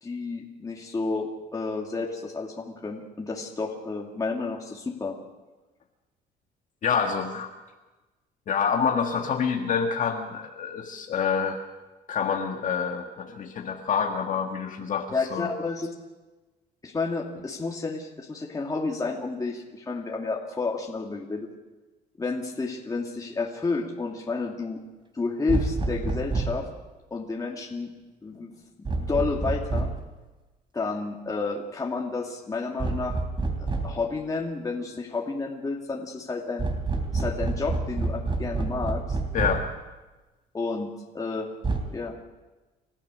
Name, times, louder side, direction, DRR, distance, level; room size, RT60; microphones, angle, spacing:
voice 1, 0.0-5.2 15.1-15.9 16.8-21.5 22.2-24.8 25.1-26.7 27.1-27.9 28.2-28.5 28.8-29.9 30.7-33.2 33.6-36.7 37.1-39.2 40.5-40.9 41.1-41.5 41.9-42.1, left 4 dB, 20° left, -1 dB, 2.5 m, -31 dB
voice 2, 6.8-7.5 8.5-11.6 12.1-15.5 39.3-39.6, left 6 dB, 50° left, 2 dB, 1.8 m, -27 dB
sound 1, 25.5-26.7 28.9-30.1 32.8-34.0 36.6-39.8 41.6-41.8, right 3 dB, 30° right, 3.4 m, -28 dB
30.0 x 14.0 x 6.6 m, 1.2 s
cardioid pair, 110°, 17 cm